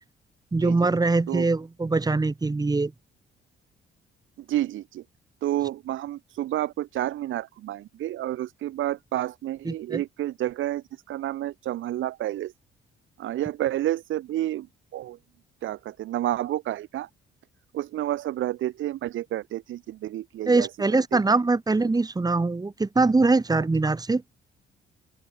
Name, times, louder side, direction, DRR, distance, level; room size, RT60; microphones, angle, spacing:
voice 1, 0.5-2.9 9.7-10.0 20.5-24.2, right 3 dB, 20° right, 2.0 m, -23 dB
voice 2, 4.4-5.0 5.4-12.5 13.2-14.7 14.9-15.2 15.6-17.1 17.7-20.7 21.1-21.2 23.5-23.6, right 13 dB, 80° right, 1.6 m, -30 dB
open air
cardioid pair, 90°, 20 cm